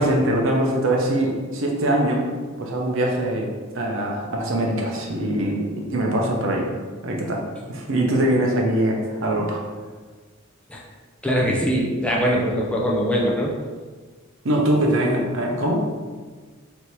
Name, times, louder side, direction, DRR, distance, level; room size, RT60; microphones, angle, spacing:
voice 1, 0.0-2.3 2.6-6.7 7.0-7.4 7.7-9.6 14.4-15.8, right 1 dB, 65° right, -1 dB, 0.7 m, -22 dB
voice 2, 11.2-13.6, equal, 5° left, -3 dB, 0.4 m, -22 dB
3.3 x 2.7 x 4.5 m, 1.4 s
head